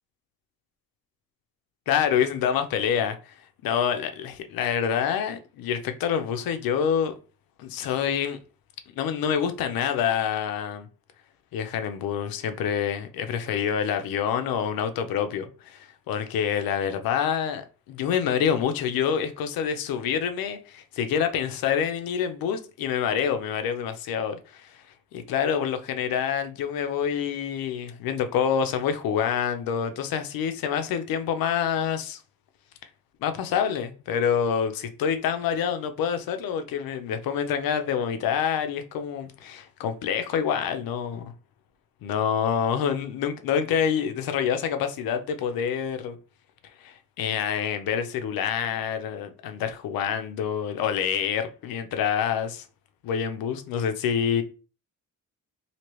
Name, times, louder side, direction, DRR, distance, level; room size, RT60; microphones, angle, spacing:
voice 1, 1.9-3.3 3.6-7.1 7.6-8.4 9.0-10.9 11.5-24.7 25.1-32.2 33.2-41.3 42.0-46.2 46.8-52.6 53.0-54.4, left 8 dB, 85° left, 0.6 m, -27 dB
3.0 x 2.8 x 3.0 m
cardioid pair, 120°, 35 cm